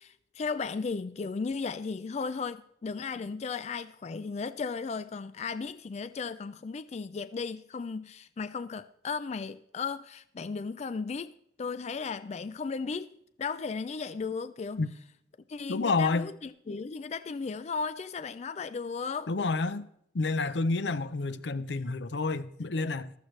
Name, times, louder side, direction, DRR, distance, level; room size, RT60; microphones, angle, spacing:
voice 1, 0.0-14.8 15.5-19.3, left 5 dB, 40° left, 0.4 m, -35 dB
voice 2, 15.7-16.3 19.3-19.9 20.1-23.1, left 3 dB, 80° left, 0.7 m, -29 dB
15.0 x 12.5 x 3.2 m
head